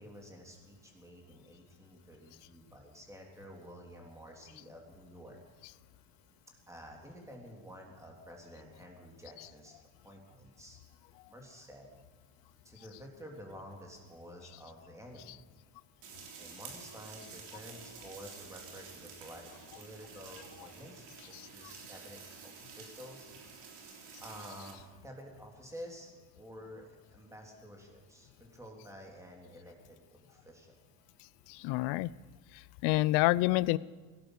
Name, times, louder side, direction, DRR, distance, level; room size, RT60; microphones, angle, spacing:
voice 1, 0.0-5.4 6.5-9.8 10.0-10.8 11.3-11.9 12.6-15.4 16.4-19.5 19.7-23.3 23.6-23.7 24.2-30.7, equal, 5° right, 0 dB, 3.4 m, -50 dB
sound 1, 16.0-24.7, right 5 dB, 75° right, 3.9 m, -50 dB
voice 2, 31.5-32.1 32.5-33.8, left 19 dB, 75° left, 21 dB, 0.6 m, -28 dB
17.5 x 11.5 x 6.6 m, 1.4 s
cardioid pair, 115°, 41 cm